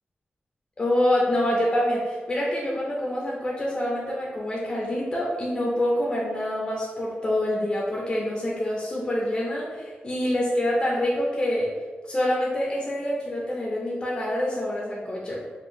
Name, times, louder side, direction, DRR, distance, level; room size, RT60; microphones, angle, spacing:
voice 1, 0.8-11.7 12.1-15.4, left 1 dB, 25° left, -4 dB, 0.5 m, -26 dB
3.6 x 2.2 x 2.6 m, 1.4 s
wide cardioid pair, 175°, 4 cm